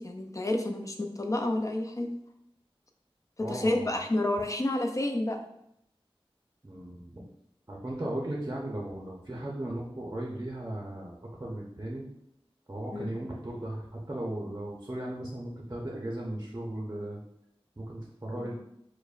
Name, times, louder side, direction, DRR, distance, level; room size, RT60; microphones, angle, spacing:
voice 1, 0.0-2.1 3.5-5.4 12.9-13.2 18.4-18.5, left 1 dB, 35° left, 4 dB, 0.4 m, -30 dB
voice 2, 3.4-4.0 6.6-7.3 7.7-12.1 12.7-17.2 17.8-18.5, right 1 dB, 30° right, -3 dB, 0.6 m, -37 dB
4.9 x 2.1 x 2.4 m, 0.76 s
wide cardioid pair, 40°, 10 cm